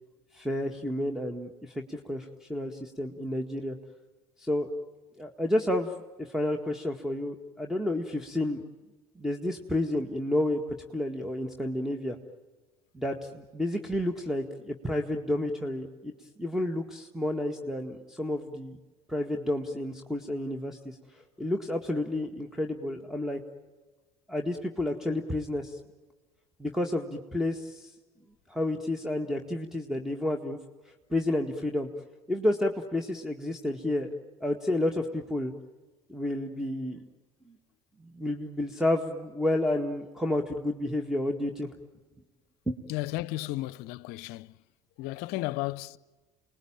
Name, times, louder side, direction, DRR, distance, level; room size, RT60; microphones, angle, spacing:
voice 1, 0.3-3.8 4.4-4.7 5.2-5.9 6.2-8.6 9.2-10.6 10.9-12.2 12.9-16.1 16.4-18.8 19.1-23.4 24.3-25.8 26.6-27.9 28.5-30.6 30.9-31.9 32.3-34.1 34.4-35.5 36.1-37.0 37.5-37.6 38.1-41.7 42.7-42.8, left 1 dB, ahead, 1.9 m, -30 dB
voice 2, 42.9-44.6 45.0-46.0, left 17 dB, 60° left, 0.7 m, -34 dB
30.0 x 20.0 x 8.9 m
hypercardioid pair, 65°, 19 cm